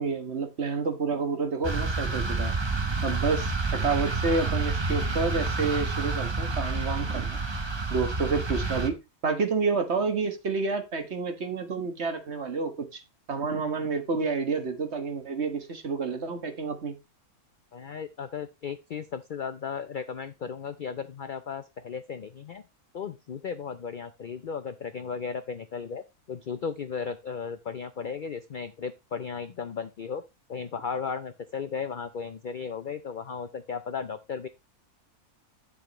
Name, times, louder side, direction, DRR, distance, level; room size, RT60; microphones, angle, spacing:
voice 1, 0.0-2.5 3.0-7.4 7.9-9.0 9.2-13.0 13.3-16.9, right 4 dB, 50° right, 1.6 m, -29 dB
sound 1, 1.6-8.9, right 3 dB, 20° right, 0.8 m, -29 dB
voice 2, 17.7-22.6 22.9-26.0 26.3-30.2 30.5-34.5, left 6 dB, 70° left, 0.4 m, -35 dB
10.0 x 7.1 x 3.0 m
omnidirectional pair, 1.6 m